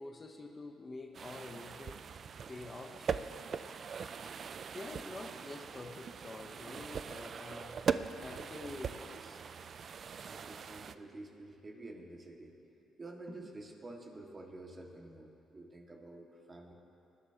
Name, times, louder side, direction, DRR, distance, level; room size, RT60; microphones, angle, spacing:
voice 1, 0.0-2.0 2.5-3.1 4.7-7.8 8.2-9.4, left 2 dB, 30° left, 4 dB, 0.8 m, -47 dB
sound 1, 1.1-10.9, right 6 dB, 50° right, 0.3 m, -41 dB
voice 2, 10.2-12.5 13.0-16.7, right 2 dB, 30° right, 0 dB, 1.7 m, -49 dB
20.5 x 11.0 x 2.8 m, 2.8 s
cardioid pair, 90°, 0 cm